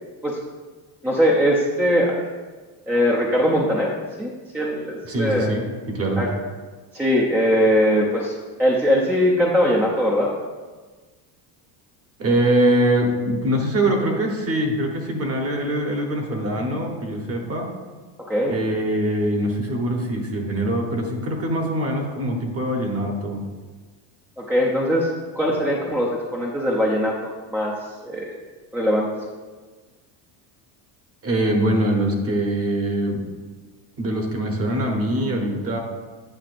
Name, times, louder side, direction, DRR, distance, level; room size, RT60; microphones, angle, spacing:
voice 1, 1.0-2.3 2.9-3.9 4.2-5.6 6.2-6.3 6.9-10.3 18.3-18.5 24.4-27.8 28.0-28.4 28.7-29.1, equal, 5° right, -3 dB, 0.6 m, -21 dB
voice 2, 5.0-6.2 12.2-17.7 18.5-23.4 31.2-33.2 34.0-35.8, right 1 dB, 30° right, 2 dB, 1.1 m, -23 dB
9.0 x 5.5 x 2.5 m, 1.3 s
cardioid pair, 125°, 45 cm